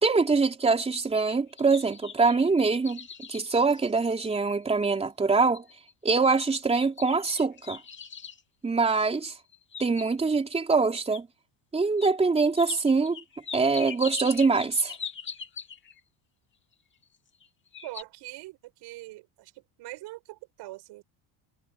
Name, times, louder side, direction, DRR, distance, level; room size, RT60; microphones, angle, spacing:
voice 1, 0.0-5.7 6.0-7.8 8.6-9.3 9.8-11.3 11.7-13.2 13.5-15.0, right 4 dB, 15° right, 3.6 m, -24 dB
sound 1, 0.9-4.4 4.9-5.0 5.5-5.9 6.8-8.4 9.4-10.4 11.1-11.2 12.0-12.1 12.5-16.0 17.0-17.5 17.7-18.0, left 6 dB, 25° left, 2.8 m, -41 dB
voice 2, 17.8-21.0, right 18 dB, 60° right, 7.7 m, -43 dB
cardioid pair, 160°, 47 cm